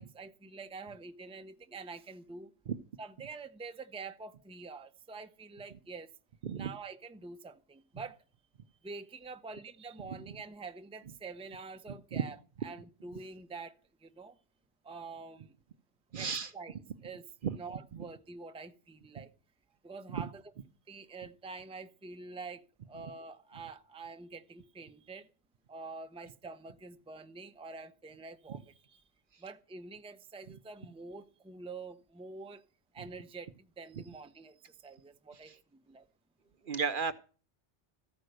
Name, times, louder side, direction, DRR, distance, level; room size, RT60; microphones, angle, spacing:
voice 1, 0.0-2.5 3.0-6.1 6.6-8.2 8.8-13.7 14.0-14.4 14.8-15.5 16.1-17.3 17.5-19.3 19.8-20.4 20.9-25.3 25.7-29.0 29.4-32.6 32.9-36.0, right 4 dB, 5° right, 0.5 m, -46 dB
voice 2, 16.1-16.5 17.4-17.6 20.1-20.2 36.7-37.1, right 6 dB, 55° right, 0.8 m, -33 dB
14.5 x 5.3 x 7.8 m
omnidirectional pair, 1.1 m